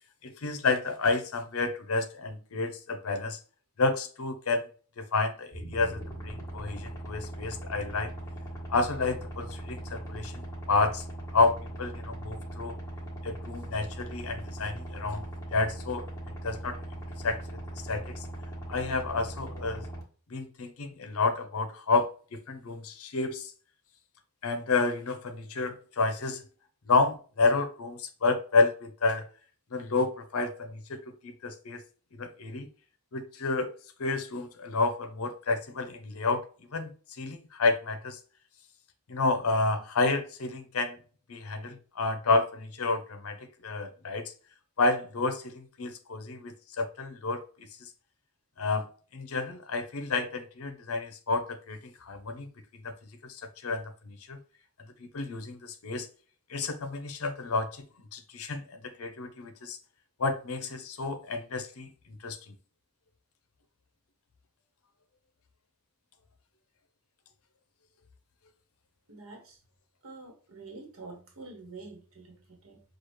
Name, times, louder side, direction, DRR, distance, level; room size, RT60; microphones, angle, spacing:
voice 1, 0.2-3.4 3.8-4.7 5.0-8.1 8.7-11.0 11.3-12.7 13.2-15.2 15.5-16.0 16.4-16.8 17.2-17.6 17.9-18.2 18.7-19.9 20.3-23.5 24.4-26.4 26.9-29.3 29.7-31.8 32.1-32.7 33.1-33.7 34.0-36.4 36.7-36.9 37.2-38.2 39.1-41.0 41.3-44.3 44.8-47.9 48.6-48.9 49.1-52.5 52.8-52.9 53.2-54.4 55.0-56.1 56.5-57.8 58.1-59.8 60.2-61.9 62.2-62.5, left 3 dB, 75° left, 0.6 m, -30 dB
sound 1, 5.5-20.0, right 1 dB, 15° left, 1.2 m, -40 dB
voice 2, 69.1-69.6 70.0-72.8, right 3 dB, 65° right, 1.1 m, -47 dB
6.2 x 2.3 x 3.1 m
head